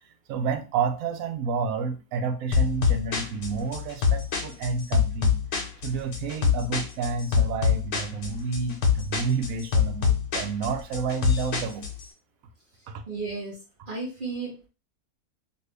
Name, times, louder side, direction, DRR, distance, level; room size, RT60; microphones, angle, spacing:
voice 1, 0.3-5.4 5.8-11.8 12.9-13.0, right 5 dB, 70° right, 7 dB, 0.9 m, -30 dB
sound 1, 2.5-12.0, left 6 dB, 75° left, 1.2 m, -25 dB
voice 2, 13.1-13.6 13.9-14.7, right 4 dB, 40° right, -3 dB, 1.0 m, -33 dB
2.9 x 2.6 x 3.2 m, 0.32 s
omnidirectional pair, 1.6 m